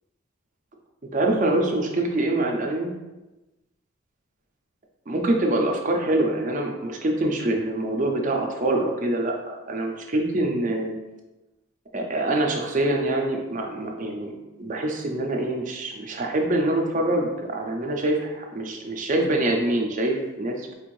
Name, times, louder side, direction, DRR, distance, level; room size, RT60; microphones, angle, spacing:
voice 1, 1.1-2.9 5.1-11.0 11.9-14.3 14.6-20.7, right 1 dB, 40° right, 2 dB, 0.5 m, -25 dB
4.3 x 2.5 x 3.1 m, 1.1 s
head